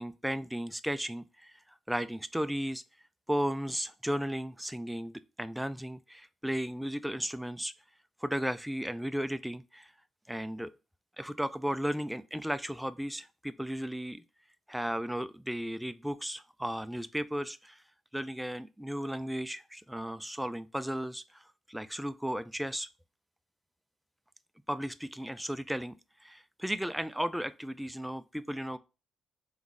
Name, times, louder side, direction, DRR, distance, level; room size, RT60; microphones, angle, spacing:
voice 1, 0.0-1.5 1.9-2.8 3.3-7.7 8.2-9.9 10.3-10.7 11.2-14.2 14.7-17.8 18.1-21.4 21.7-22.9 24.7-26.0 26.2-28.8, equal, 5° right, 0.3 m, -35 dB
3.8 x 3.1 x 3.6 m
cardioid pair, 90°, 0 cm